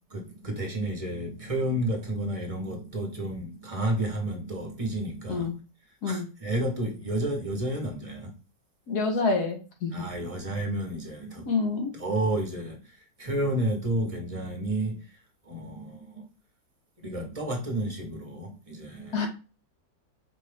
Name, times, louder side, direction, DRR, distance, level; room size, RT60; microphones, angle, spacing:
voice 1, 0.1-5.5 6.0-8.3 9.9-11.5 11.9-15.1 15.4-16.2 17.0-19.3, right 1 dB, 25° right, 1.1 m, -31 dB
voice 2, 8.9-10.0 11.5-11.9 19.1-19.3, left 4 dB, 60° left, 1.6 m, -27 dB
5.2 x 2.6 x 3.3 m
omnidirectional pair, 1.9 m